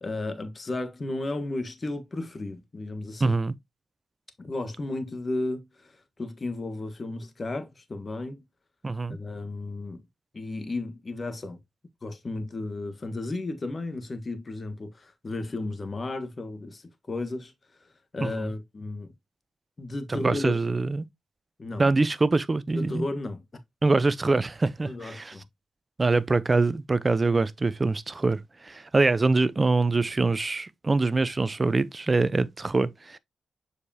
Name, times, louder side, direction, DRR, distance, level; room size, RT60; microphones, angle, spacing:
voice 1, 0.0-3.3 4.4-5.9 6.2-8.4 9.1-10.0 10.3-11.6 12.0-16.8 17.1-17.5 18.1-19.1 19.8-20.6 21.6-21.9 22.7-23.4 24.8-25.4, left 2 dB, 40° left, 1.5 m, -33 dB
voice 2, 3.2-3.5 8.8-9.2 18.2-18.5 20.2-21.0 21.8-23.1 23.8-25.4 26.0-33.2, right 3 dB, 35° right, 0.7 m, -24 dB
6.8 x 5.0 x 2.8 m
supercardioid pair, 55°, 0 cm